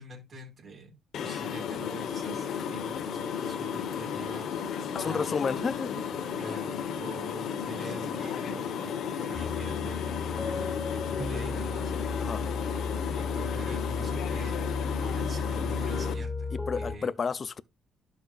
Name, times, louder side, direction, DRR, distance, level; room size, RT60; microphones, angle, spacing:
voice 1, 0.0-4.5 5.0-5.3 6.4-11.9 13.1-14.7 15.0-17.1, right 3 dB, 45° right, 4.8 m, -45 dB
sound 1, 1.1-16.1, left 7 dB, 70° left, 1.2 m, -34 dB
voice 2, 4.9-6.0 12.2-12.4 16.5-17.6, left 5 dB, 40° left, 0.5 m, -31 dB
sound 2, 9.3-16.9, left 4 dB, 15° left, 2.6 m, -34 dB
12.0 x 5.6 x 2.5 m
cardioid pair, 90°, 0 cm